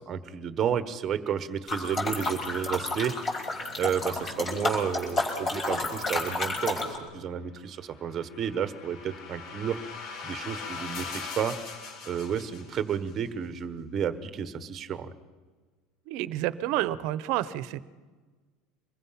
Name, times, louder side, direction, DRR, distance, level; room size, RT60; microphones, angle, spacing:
voice 1, 0.0-3.1 3.8-9.8 10.2-11.6 12.1-15.1, right 8 dB, 25° right, 12 dB, 1.2 m, -31 dB
sound 1, 1.7-7.0, left 2 dB, 20° left, 5.2 m, -31 dB
sound 2, 7.8-13.1, left 5 dB, 55° left, 5.3 m, -41 dB
voice 2, 16.1-17.8, right 14 dB, 60° right, 16 dB, 0.9 m, -29 dB
25.5 x 21.5 x 5.9 m, 1.3 s
cardioid pair, 160°, 0 cm